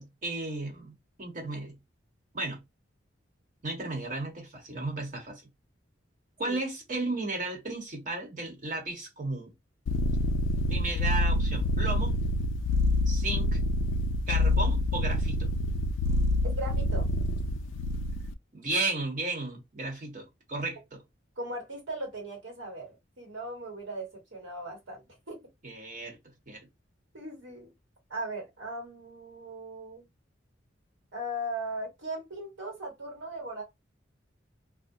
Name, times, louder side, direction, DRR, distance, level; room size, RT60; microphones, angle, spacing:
voice 1, 0.0-1.8 2.3-2.6 3.6-5.4 6.4-9.5 10.7-12.1 13.1-13.6 14.3-15.5 18.5-21.0 25.6-26.2 26.5-26.6, right 2 dB, 45° right, 1.0 m, -34 dB
sound 1, 9.9-18.3, left 1 dB, 75° left, 0.3 m, -27 dB
voice 2, 16.4-17.1 21.4-25.4 27.1-27.7 28.1-30.1 31.1-33.6, right 1 dB, 75° right, 1.4 m, -38 dB
2.3 x 2.1 x 2.6 m
head